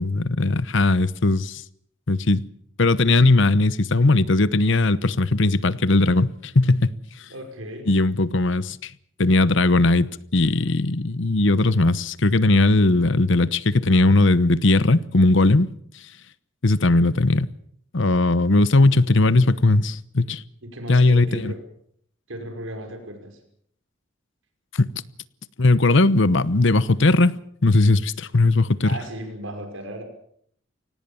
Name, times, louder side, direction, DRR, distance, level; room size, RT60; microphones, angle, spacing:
voice 1, 0.0-1.6 2.1-2.4 2.8-6.9 7.9-8.9 9.2-10.1 10.3-15.7 16.6-17.5 17.9-20.4 20.9-21.5 24.8-24.9 25.6-27.3 27.6-28.9, left 2 dB, 65° left, 1.0 m, -18 dB
voice 2, 7.3-7.9 20.6-21.6 22.3-23.4 28.8-30.0, right 1 dB, 75° right, 5.6 m, -35 dB
25.5 x 18.5 x 7.1 m
head